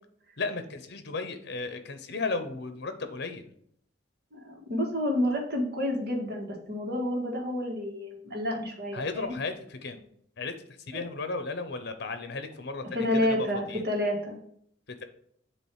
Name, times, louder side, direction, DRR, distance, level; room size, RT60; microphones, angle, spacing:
voice 1, 0.4-3.5 8.9-10.0 10.4-10.5 10.9-13.9, left 3 dB, 60° left, 9 dB, 0.9 m, -35 dB
voice 2, 4.3-9.4 12.9-14.4, left 1 dB, 60° right, 0 dB, 1.7 m, -29 dB
7.5 x 3.1 x 4.8 m, 0.67 s
head